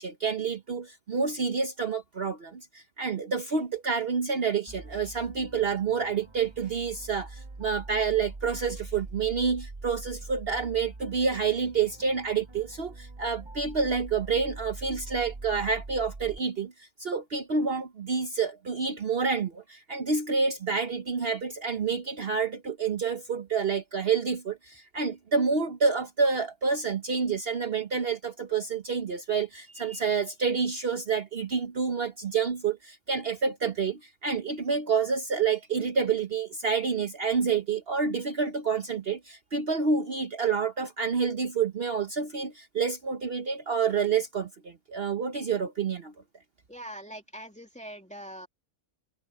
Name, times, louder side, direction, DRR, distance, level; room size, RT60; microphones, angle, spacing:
voice 1, 0.0-46.1, right 5 dB, 50° right, 1.2 m, -28 dB
sound 1, 4.7-16.4, right 3 dB, 25° right, 0.9 m, -43 dB
voice 2, 46.7-48.5, right 1 dB, 5° left, 2.5 m, -42 dB
omnidirectional pair, 1.3 m